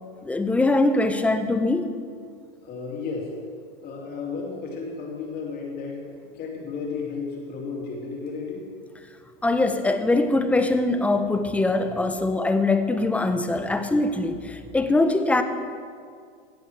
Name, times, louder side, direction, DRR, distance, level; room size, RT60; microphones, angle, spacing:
voice 1, 0.2-1.9 9.4-15.4, left 2 dB, 5° left, 8 dB, 0.4 m, -22 dB
voice 2, 2.6-3.3 3.8-6.1 6.3-8.7, left 4 dB, 30° left, -1 dB, 2.6 m, -33 dB
16.5 x 7.8 x 4.7 m, 2.2 s
supercardioid pair, 135°, 30 cm